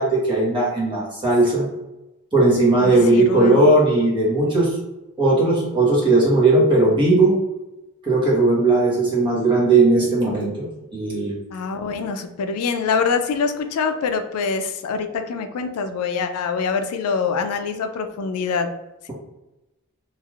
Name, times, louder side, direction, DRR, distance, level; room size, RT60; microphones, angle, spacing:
voice 1, 0.0-1.6 2.3-4.7 5.2-7.4 8.0-11.3, right 2 dB, 20° right, -5 dB, 1.1 m, -17 dB
voice 2, 2.8-3.6 11.5-18.7, left 5 dB, 90° left, 7 dB, 0.4 m, -25 dB
3.2 x 2.4 x 2.4 m, 0.96 s
head